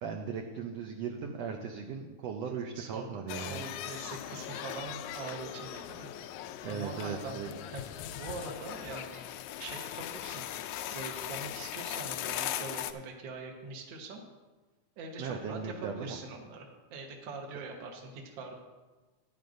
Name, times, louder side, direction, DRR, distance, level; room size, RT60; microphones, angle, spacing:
voice 1, 0.0-3.7 6.6-7.5 15.2-16.2, right 6 dB, 75° right, 2 dB, 1.6 m, -38 dB
voice 2, 2.7-7.8 8.2-9.2 9.6-10.5 10.9-14.2 15.0-18.6, right 3 dB, 55° right, 2 dB, 1.5 m, -43 dB
sound 1, 3.3-12.9, left 12 dB, 80° left, 1.8 m, -39 dB
14.5 x 10.5 x 2.6 m, 1.2 s
omnidirectional pair, 3.5 m